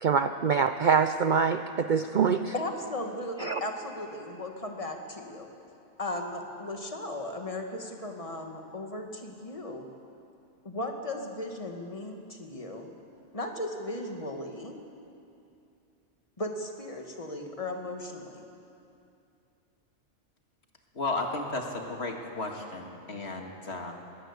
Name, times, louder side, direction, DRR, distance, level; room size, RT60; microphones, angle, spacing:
voice 1, 0.0-2.5 3.4-3.6, right 6 dB, 55° right, 10 dB, 0.6 m, -25 dB
voice 2, 2.3-5.5 6.0-9.9 10.7-12.9 13.3-14.8 16.4-18.5, left 1 dB, 25° left, 3 dB, 1.9 m, -36 dB
voice 3, 21.0-23.9, left 2 dB, 55° left, 2 dB, 2.2 m, -34 dB
21.0 x 17.0 x 8.2 m, 2.6 s
omnidirectional pair, 1.3 m